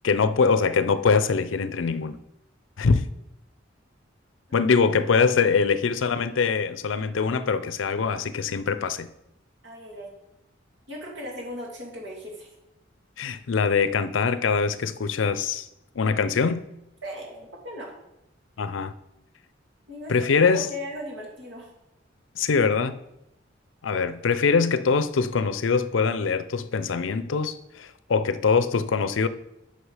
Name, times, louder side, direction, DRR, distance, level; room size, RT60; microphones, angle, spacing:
voice 1, 0.0-2.2 2.8-3.0 4.5-9.1 13.2-15.7 16.0-16.6 18.6-18.9 20.1-20.7 22.4-23.0 23.8-29.3, left 5 dB, 80° left, 0.5 m, -23 dB
voice 2, 9.6-10.1 10.9-12.5 17.0-17.9 19.9-21.7, equal, 65° right, 2.5 m, -37 dB
8.0 x 6.0 x 4.8 m
head